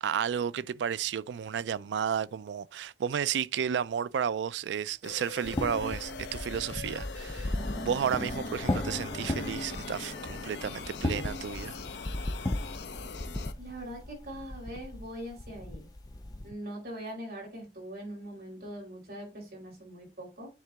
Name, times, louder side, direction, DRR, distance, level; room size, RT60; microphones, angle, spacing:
voice 1, 0.0-7.6 7.8-11.8, right 8 dB, 85° right, 0.3 m, -32 dB
sound 1, 5.0-13.5, left 5 dB, 75° left, 0.6 m, -43 dB
sound 2, 5.4-16.5, left 1 dB, 20° left, 0.4 m, -36 dB
sound 3, 7.6-13.5, left 1 dB, 45° left, 1.2 m, -43 dB
voice 2, 13.6-15.9 16.4-20.5, equal, 60° right, 4.7 m, -42 dB
9.4 x 3.7 x 3.4 m
head